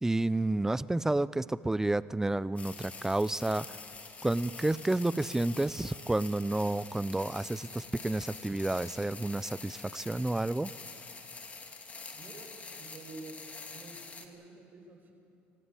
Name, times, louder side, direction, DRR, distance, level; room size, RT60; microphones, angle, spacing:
voice 1, 0.0-3.8 4.2-10.7, right 2 dB, 10° right, 18 dB, 0.5 m, -30 dB
sound 1, 2.6-14.3, left 4 dB, 30° left, 2.4 m, -46 dB
voice 2, 12.1-13.4 13.7-15.1, right 3 dB, 45° right, 3 dB, 5.4 m, -49 dB
25.5 x 15.5 x 9.1 m, 2.5 s
supercardioid pair, 90°, 5 cm